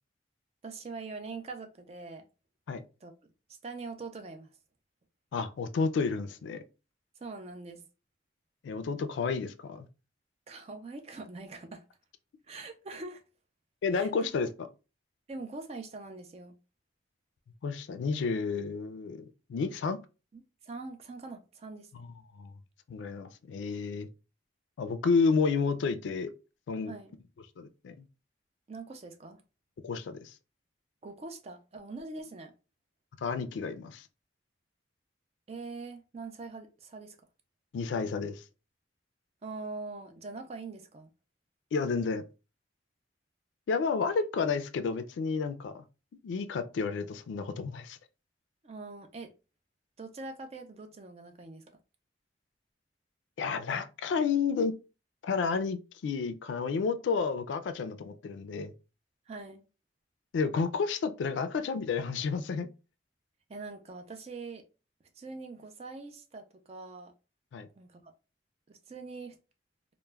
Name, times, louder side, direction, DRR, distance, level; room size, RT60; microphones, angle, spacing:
voice 1, 0.6-2.3 3.0-3.1 3.6-4.5 7.2-7.9 10.5-11.8 12.5-13.2 13.9-14.3 15.3-16.6 20.3-22.0 26.9-27.1 28.7-29.4 31.0-32.5 35.5-37.2 39.4-41.1 48.6-49.3 50.0-51.8 59.3-59.6 63.5-64.6 65.2-67.1 67.8-68.1 68.7-69.4, right 3 dB, 35° right, 0.4 m, -43 dB
voice 2, 5.3-6.6 8.6-9.9 13.8-14.5 17.6-20.0 21.9-22.1 22.3-22.5 22.9-24.1 24.8-26.3 26.7-26.9 27.6-28.0 29.8-30.3 33.2-34.1 37.7-38.4 41.7-42.2 43.7-45.8 46.2-48.0 53.4-54.8 55.2-58.7 60.3-62.7 67.5-67.7, left 5 dB, 90° left, 0.3 m, -31 dB
2.2 x 2.0 x 3.1 m
head